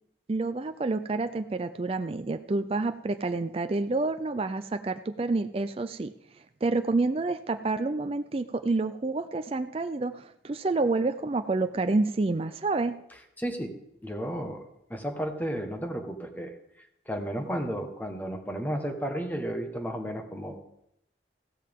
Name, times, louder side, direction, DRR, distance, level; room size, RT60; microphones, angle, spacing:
voice 1, 0.3-6.1 6.6-13.0, right 3 dB, 30° right, 9 dB, 0.4 m, -28 dB
voice 2, 13.4-13.7 14.0-14.6 14.9-16.5 17.1-20.6, equal, 10° left, 4 dB, 1.4 m, -33 dB
15.5 x 13.0 x 3.7 m, 0.78 s
head